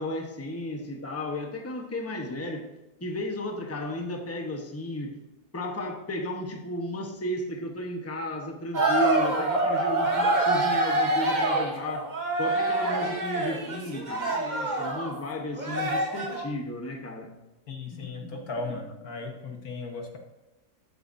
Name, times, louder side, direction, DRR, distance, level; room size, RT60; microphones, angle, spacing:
voice 1, 0.0-2.7 3.0-5.1 5.5-12.1 12.4-17.3 17.9-18.4 18.7-18.8, left 1 dB, 10° left, 2 dB, 0.9 m, -34 dB
sound 1, 8.7-15.1 15.5-16.4, right 2 dB, 30° right, 1.2 m, -26 dB
voice 2, 17.7-20.2, left 3 dB, 70° left, 3 dB, 1.8 m, -36 dB
13.0 x 8.3 x 2.7 m, 0.98 s
omnidirectional pair, 1.6 m